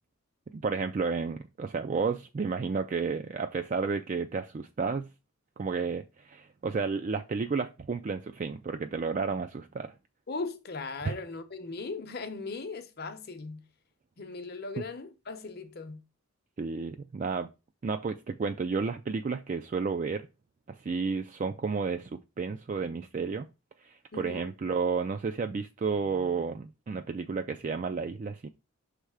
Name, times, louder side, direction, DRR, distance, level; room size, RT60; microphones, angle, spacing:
voice 1, 0.5-5.1 5.6-9.9 11.0-11.1 16.6-17.5 17.8-20.3 20.8-23.5 23.8-28.5, right 5 dB, 35° right, 0.3 m, -32 dB
voice 2, 10.3-13.6 14.2-16.0 24.1-24.5, left 3 dB, 45° left, 0.8 m, -38 dB
6.3 x 3.4 x 4.8 m
head